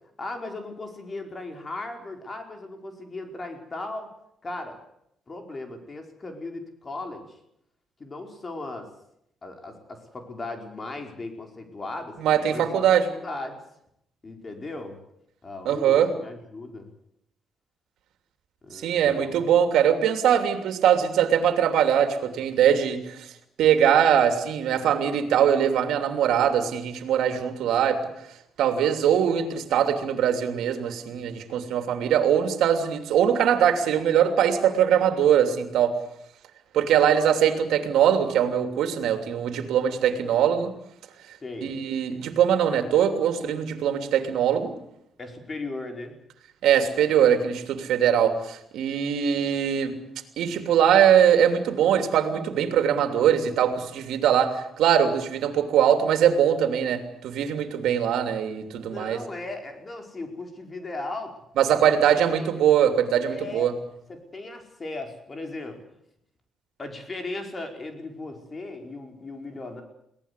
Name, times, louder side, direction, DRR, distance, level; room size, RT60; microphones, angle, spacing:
voice 1, 0.2-4.1 4.4-4.8 5.3-7.4 8.0-8.9 9.4-12.2 12.5-12.8 13.1-13.6 14.2-15.0 15.4-16.9 18.6-19.3 41.4-41.8 45.2-46.2 58.7-61.3 61.8-61.9 62.3-62.5 63.3-63.7 64.1-65.8 66.8-69.8, left 2 dB, 30° left, 4 dB, 4.9 m, -37 dB
voice 2, 12.2-13.0 15.6-16.1 18.7-23.3 23.6-28.0 28.6-35.9 36.7-40.7 41.6-44.7 46.6-50.0 50.4-59.2 61.6-63.7, right 9 dB, 80° right, 7 dB, 2.9 m, -22 dB
22.5 x 17.5 x 8.4 m, 0.75 s
cardioid pair, 90°, 0 cm